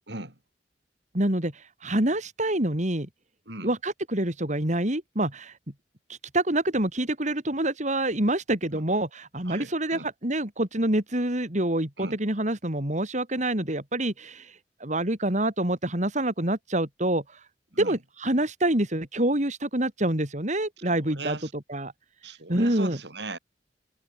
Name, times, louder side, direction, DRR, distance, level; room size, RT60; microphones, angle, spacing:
voice 1, 0.1-0.4 3.5-3.7 8.7-8.8 9.5-10.1 12.0-12.2 17.7-18.0 20.9-21.5 22.2-23.4, right 2 dB, 75° right, 7.5 m, -38 dB
voice 2, 1.1-3.1 3.6-5.6 6.1-17.4 17.8-21.9 22.5-23.0, right 1 dB, 45° right, 4.2 m, -27 dB
head